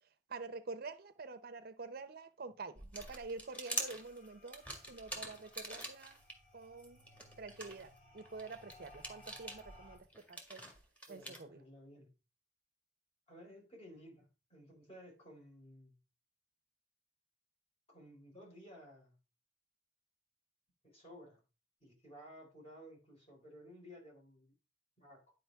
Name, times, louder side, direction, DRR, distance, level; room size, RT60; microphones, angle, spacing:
voice 1, 0.3-6.2 6.5-7.0 7.4-10.6 11.1-11.6, right 4 dB, 55° right, 0.6 m, -47 dB
sound 1, 2.8-6.3 6.8-11.4, right 1 dB, 10° left, 1.7 m, -45 dB
sound 2, 3.4-10.0, left 1 dB, 50° left, 4.7 m, -61 dB
voice 2, 11.1-12.1 13.3-16.0 17.9-19.2 20.8-21.4 21.8-24.5 25.0-25.2, equal, 35° left, 4.4 m, -56 dB
10.5 x 5.0 x 3.5 m
head